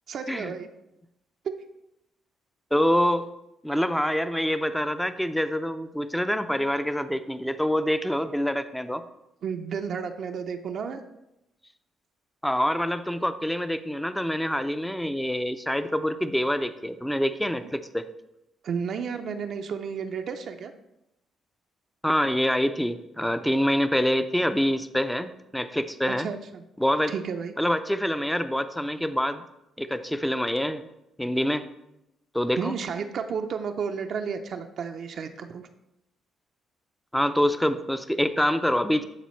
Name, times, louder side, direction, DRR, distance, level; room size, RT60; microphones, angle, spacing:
voice 1, 0.1-0.7 9.4-11.0 17.6-17.7 18.6-20.7 26.2-26.6 27.1-27.5 32.6-35.6, right 6 dB, 65° right, 5 dB, 0.5 m, -32 dB
voice 2, 2.7-3.3 3.6-9.0 12.4-18.1 22.0-26.3 26.8-27.1 27.6-29.4 29.8-30.9 31.2-31.7 32.3-32.7 37.1-39.0, equal, 5° left, 11 dB, 0.4 m, -26 dB
11.5 x 4.1 x 3.1 m, 0.88 s
cardioid pair, 90°, 0 cm